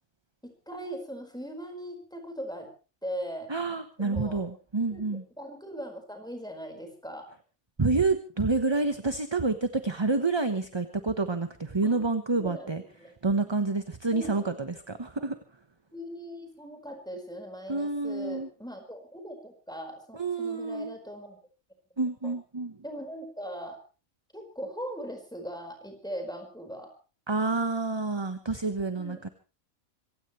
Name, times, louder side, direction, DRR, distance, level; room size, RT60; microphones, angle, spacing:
voice 1, 0.4-2.7 3.0-3.5 4.0-4.4 4.9-5.0 5.4-7.3 11.8-12.0 12.4-13.2 14.1-14.5 15.2-15.3 15.9-21.4 22.2-22.3 22.8-23.8 24.3-26.9 29.0-29.3, equal, 5° left, 4 dB, 4.7 m, -40 dB
voice 2, 3.5-5.2 7.8-12.8 13.2-15.4 17.7-18.5 20.1-20.9 22.0-22.8 27.3-29.3, right 3 dB, 20° right, 9 dB, 0.9 m, -28 dB
25.5 x 16.5 x 3.2 m, 0.33 s
omnidirectional pair, 1.5 m